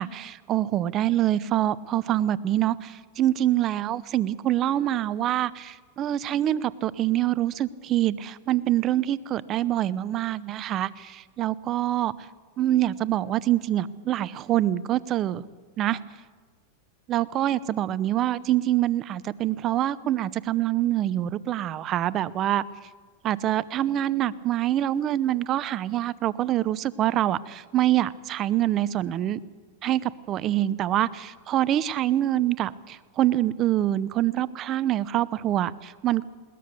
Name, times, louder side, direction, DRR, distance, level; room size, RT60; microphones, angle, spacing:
voice 1, 0.0-12.1 12.6-15.4 15.8-16.0 17.1-22.6 23.2-29.4 29.8-36.2, right 13 dB, 35° right, 18 dB, 0.7 m, -25 dB
21.0 x 18.0 x 6.9 m, 1.4 s
hypercardioid pair, 120°, 0 cm